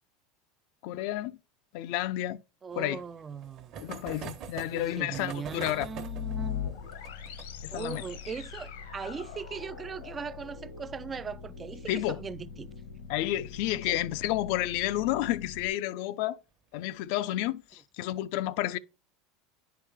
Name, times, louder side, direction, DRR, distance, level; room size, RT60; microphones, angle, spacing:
voice 1, 0.8-1.4 1.7-2.4 2.8-3.0 3.8-5.9 7.6-8.0 11.9-12.2 13.1-16.4 16.7-18.8, left 14 dB, 65° left, 0.5 m, -31 dB
voice 2, 2.6-3.7 4.7-6.8 7.7-12.7 13.9-14.0, right 6 dB, 20° right, 0.4 m, -39 dB
sound 1, 2.7-11.9 12.2-12.3 12.5-12.6 12.9-13.0 14.4-14.7 15.3-15.7, right 7 dB, 45° right, 1.1 m, -46 dB
sound 2, 5.7-15.7, left 8 dB, 85° left, 1.4 m, -41 dB
9.9 x 4.7 x 3.6 m
supercardioid pair, 140°, 0 cm